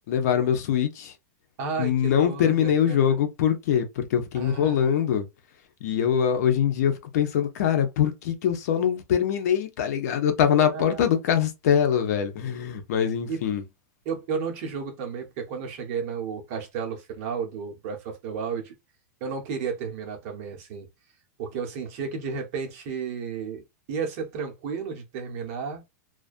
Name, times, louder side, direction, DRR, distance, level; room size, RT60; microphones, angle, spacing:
voice 1, 0.1-1.1 1.8-5.3 5.8-13.6, left 8 dB, 60° left, 0.7 m, -23 dB
voice 2, 1.6-3.2 4.3-5.0 10.7-11.0 13.3-13.4 14.0-18.7 19.2-20.9 21.4-23.6 23.9-25.8, right 5 dB, 45° right, 0.9 m, -33 dB
2.3 x 2.2 x 2.5 m
supercardioid pair, 155°, 10 cm